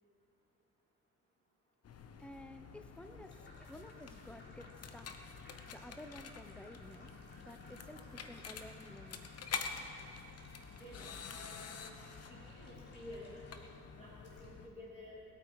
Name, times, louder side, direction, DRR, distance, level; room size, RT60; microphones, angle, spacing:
sound 1, 1.8-14.7, left 6 dB, 55° left, 1.1 m, -48 dB
voice 1, 2.2-3.4 3.7-5.1 5.7-7.1 7.4-9.3, left 1 dB, 5° left, 8 dB, 0.8 m, -52 dB
sound 2, 3.0-14.5, equal, 40° left, 4.0 m, -62 dB
voice 2, 10.7-11.9 12.3-13.3 14.0-15.2, left 1 dB, 20° left, -7 dB, 3.4 m, -52 dB
20.5 x 9.1 x 4.8 m, 2.8 s
cardioid pair, 90°, 30 cm